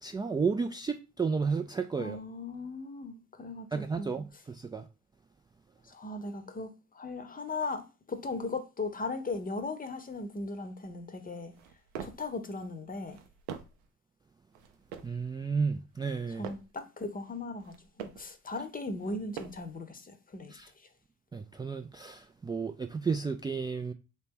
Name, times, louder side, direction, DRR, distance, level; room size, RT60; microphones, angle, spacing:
voice 1, 0.0-2.2 3.7-4.8 15.0-16.5 20.5-20.7 21.3-23.9, right 5 dB, 15° right, 0.3 m, -32 dB
voice 2, 2.0-3.7 4.0-4.1 5.9-11.5 12.0-13.2 16.4-20.6, left 3 dB, 25° left, 0.8 m, -38 dB
sound 1, 11.5-12.3 13.0-13.9 14.5-15.2 15.9-16.8 17.5-18.3 19.0-19.8, right 8 dB, 80° right, 0.6 m, -45 dB
3.0 x 2.9 x 3.5 m
hypercardioid pair, 50°, 34 cm